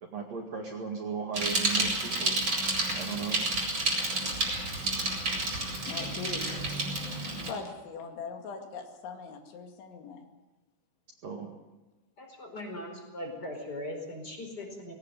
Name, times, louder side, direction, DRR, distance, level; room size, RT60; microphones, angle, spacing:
voice 1, 0.1-2.4 3.0-3.4 11.2-11.5, right 6 dB, 50° right, 1 dB, 2.5 m, -36 dB
Bicycle, 1.3-7.5, right 2 dB, 25° right, 5.0 m, -30 dB
voice 2, 5.9-6.7 7.1-10.3, left 5 dB, 80° left, 4 dB, 4.7 m, -41 dB
voice 3, 12.2-14.9, left 1 dB, 20° left, 3 dB, 4.9 m, -39 dB
20.0 x 18.0 x 9.0 m, 1.1 s
omnidirectional pair, 5.3 m